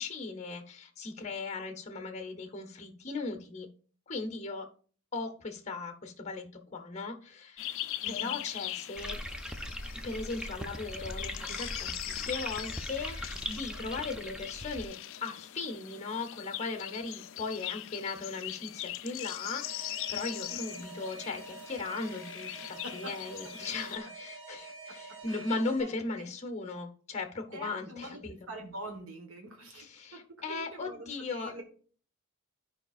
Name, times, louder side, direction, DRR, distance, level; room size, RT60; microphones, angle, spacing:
voice 1, 0.0-3.7 4.1-4.7 5.1-6.5 6.7-7.7 8.1-9.2 9.9-14.9 15.2-28.4 29.7-31.6, left 3 dB, 30° left, 6 dB, 0.9 m, -38 dB
sound 1, 7.6-24.0, left 14 dB, 60° left, 0.3 m, -41 dB
voice 2, 8.0-8.3 20.5-20.8 22.8-23.1 25.3-25.9 26.2-26.3 27.5-28.2 28.5-29.9 30.1-30.2 30.5-31.6, right 1 dB, 75° right, 2 dB, 1.3 m, -44 dB
sound 2, 9.0-14.9, equal, 5° right, 0.5 m, -40 dB
Alarm, 19.6-25.8, right 3 dB, 30° right, 2.4 m, -47 dB
12.0 x 4.8 x 2.4 m, 0.42 s
head